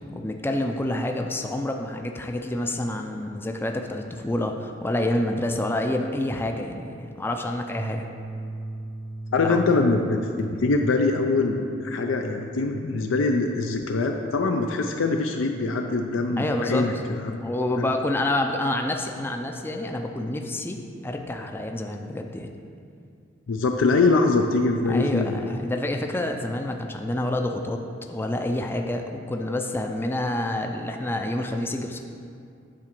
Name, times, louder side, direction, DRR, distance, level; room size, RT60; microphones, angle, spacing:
voice 1, 0.1-8.1 9.4-9.8 16.4-22.5 24.9-27.8 28.1-32.0, left 1 dB, 10° left, 3 dB, 0.4 m, -28 dB
sound 1, 7.8-14.4, right 2 dB, 35° right, 0.6 m, -39 dB
voice 2, 9.3-17.4 17.7-17.9 23.5-25.6, left 3 dB, 80° left, 3 dB, 0.5 m, -23 dB
8.9 x 3.7 x 5.9 m, 2.3 s
head